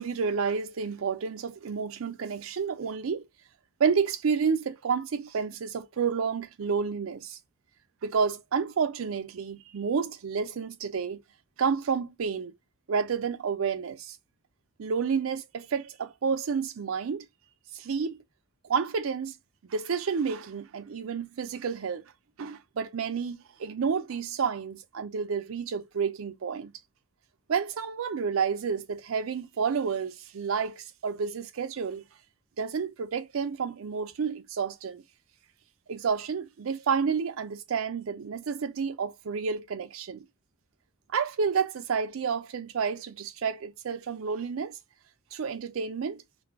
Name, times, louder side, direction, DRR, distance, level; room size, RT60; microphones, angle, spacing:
voice 1, 0.0-3.2 3.8-7.4 8.0-11.2 11.6-12.5 12.9-14.2 14.8-17.3 17.7-18.2 18.6-19.4 19.7-22.1 22.4-26.7 27.5-32.0 32.6-35.0 35.9-40.2 41.1-44.8 45.3-46.2, right 6 dB, 80° right, 0.4 m, -30 dB
2.3 x 2.0 x 3.4 m
head